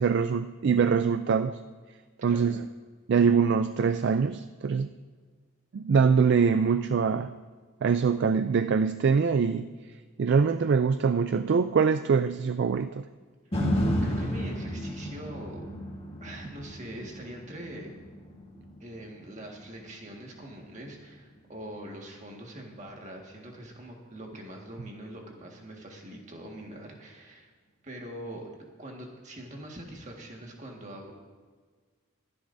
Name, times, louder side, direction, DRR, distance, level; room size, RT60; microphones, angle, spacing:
voice 1, 0.0-1.6 2.2-2.7 3.1-4.9 5.7-7.3 7.8-9.7 10.2-13.0, right 6 dB, 55° right, 10 dB, 0.3 m, -24 dB
voice 2, 2.2-2.6 14.0-15.6 16.2-17.9 18.8-27.5 27.8-31.1, right 1 dB, 35° right, 0 dB, 1.7 m, -43 dB
sound 1, 13.5-21.7 22.2-22.3, equal, 25° left, 1.7 m, -33 dB
22.5 x 10.5 x 2.7 m, 1.5 s
head